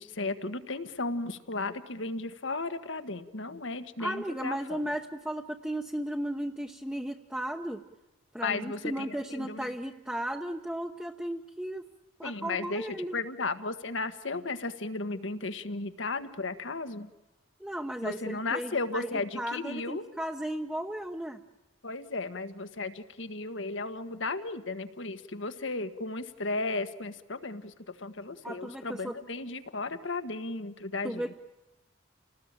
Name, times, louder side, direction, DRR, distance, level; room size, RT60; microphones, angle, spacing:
voice 1, 0.0-4.8 8.4-9.7 12.2-12.9 13.1-17.1 18.0-20.0 21.8-31.3, left 3 dB, 75° left, 10 dB, 1.6 m, -35 dB
voice 2, 4.0-7.8 8.3-11.9 12.2-13.2 17.6-21.4 28.4-29.1 31.0-31.3, right 1 dB, 5° right, 2 dB, 0.9 m, -35 dB
29.5 x 19.5 x 9.0 m, 1.1 s
head